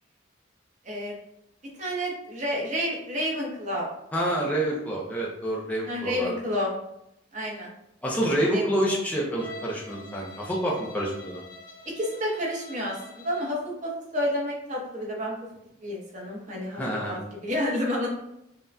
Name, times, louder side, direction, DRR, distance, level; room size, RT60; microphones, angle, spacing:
voice 1, 1.8-3.9 4.1-4.4 5.9-6.7 7.3-7.7 8.5-9.0 11.9-15.3 15.8-16.8 17.1-18.1, equal, 40° right, -2 dB, 0.9 m, -30 dB
voice 2, 4.1-6.4 8.0-11.4 16.7-17.2, right 1 dB, 10° left, -4 dB, 0.6 m, -27 dB
Bowed string instrument, 9.4-13.6, left 1 dB, 25° left, 1.0 m, -46 dB
5.5 x 2.2 x 2.6 m, 0.82 s
head